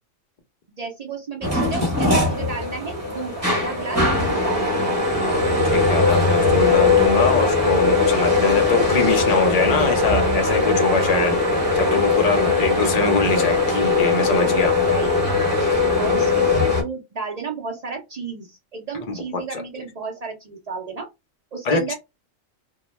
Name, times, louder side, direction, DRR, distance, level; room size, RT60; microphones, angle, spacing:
voice 1, 0.8-4.9 10.9-11.4 12.4-13.1 14.9-15.2 16.0-21.1 21.5-21.9, right 4 dB, 65° right, 0.4 m, -33 dB
sound 1, 1.4-16.8, left 3 dB, 15° right, 0.7 m, -20 dB
voice 2, 5.6-11.4 11.7-14.7 19.1-19.2 19.5-19.6 21.7-21.9, left 4 dB, 50° left, 0.4 m, -23 dB
2.2 x 2.1 x 3.0 m
omnidirectional pair, 1.4 m